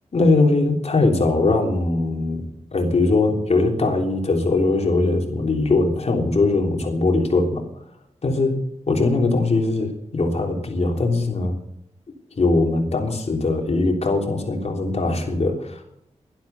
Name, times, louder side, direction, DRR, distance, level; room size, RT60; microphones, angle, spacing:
voice 1, 0.1-2.4 2.7-7.6 8.2-8.6 8.9-11.5 12.4-15.8, left 3 dB, 60° left, 2 dB, 3.4 m, -20 dB
12.0 x 11.5 x 7.0 m, 0.72 s
cardioid pair, 55°, 12 cm